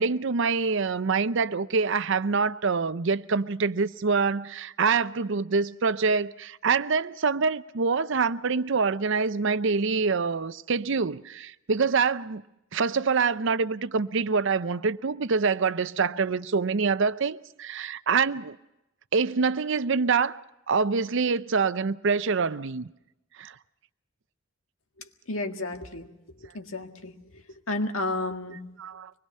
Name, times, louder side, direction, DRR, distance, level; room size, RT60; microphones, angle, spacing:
voice 1, 0.0-12.4 12.7-18.6 19.1-20.4 20.7-22.9 23.4-23.5 28.8-29.1, right 5 dB, 65° right, 0.6 m, -25 dB
voice 2, 25.0-26.1 26.4-27.2 27.7-28.6, left 2 dB, 85° left, 1.8 m, -32 dB
25.0 x 21.0 x 5.5 m
head